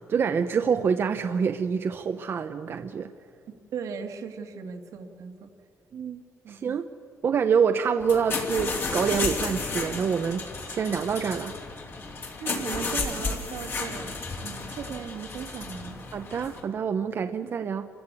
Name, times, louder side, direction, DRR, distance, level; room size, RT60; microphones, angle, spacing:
voice 1, 0.0-3.1 5.9-6.2 6.5-6.9 7.2-10.4 10.7-11.5 16.1-17.9, right 6 dB, 45° right, 7 dB, 0.7 m, -26 dB
voice 2, 3.5-5.5 6.4-6.6 12.4-16.0 17.4-17.5, right 6 dB, 80° right, 4 dB, 2.0 m, -37 dB
sound 1, 8.0-16.6, left 3 dB, 40° left, 2.8 m, -33 dB
28.0 x 15.0 x 8.4 m, 2.4 s
wide cardioid pair, 170°, 6 cm